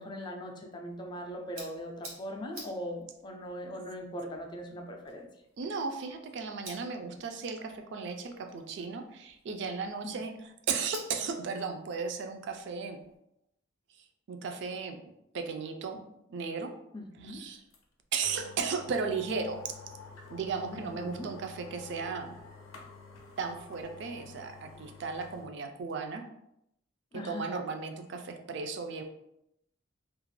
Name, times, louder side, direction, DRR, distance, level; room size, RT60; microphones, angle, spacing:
voice 1, 0.0-5.3 10.0-10.1 16.9-17.4 20.7-21.3 27.1-27.5, equal, 20° left, 2 dB, 0.3 m, -40 dB
sound 1, 0.9-13.2, right 2 dB, 90° right, 0.9 m, -53 dB
voice 2, 5.6-13.0 14.3-15.0 15.3-16.7 17.2-17.6 18.1-19.6 20.3-22.4 23.4-26.3 27.1-29.0, right 5 dB, 60° right, 5 dB, 0.3 m, -35 dB
sound 2, 17.7-17.8 18.2-25.5 25.9-26.0, left 4 dB, 85° left, 0.5 m, -49 dB
2.4 x 2.1 x 3.1 m, 0.80 s
head